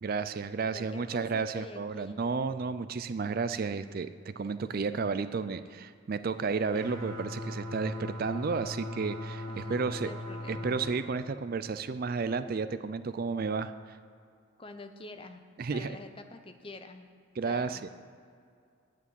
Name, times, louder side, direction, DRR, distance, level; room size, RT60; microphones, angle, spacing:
voice 1, 0.0-10.1 10.5-14.0 15.6-16.0 17.4-17.9, right 4 dB, 45° right, 12 dB, 0.4 m, -32 dB
voice 2, 0.7-2.2 9.5-10.8 14.6-15.4 15.7-17.1 17.4-17.9, left 2 dB, 25° left, 7 dB, 0.7 m, -46 dB
sound 1, 6.7-10.9, left 1 dB, 65° right, 2.8 m, -39 dB
9.3 x 8.4 x 9.5 m, 2.3 s
head